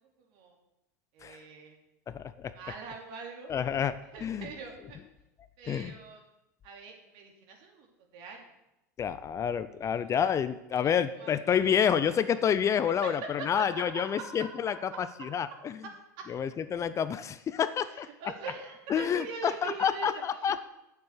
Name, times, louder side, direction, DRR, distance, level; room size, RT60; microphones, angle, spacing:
voice 1, 1.1-1.8 2.5-3.5 4.1-5.0 5.6-6.2 6.6-7.9 8.1-8.4 10.9-11.5 12.0-12.2 12.8-13.3 13.6-14.4 16.2-16.3 17.9-20.1 20.4-20.6, right 5 dB, 60° right, 1 dB, 3.0 m, -43 dB
voice 2, 2.1-2.5 3.5-4.5 5.7-5.9 9.0-15.8 16.3-18.1 18.9-20.6, left 8 dB, 30° left, 14 dB, 0.6 m, -29 dB
9.3 x 7.2 x 6.6 m, 0.90 s
hypercardioid pair, 90°, 10 cm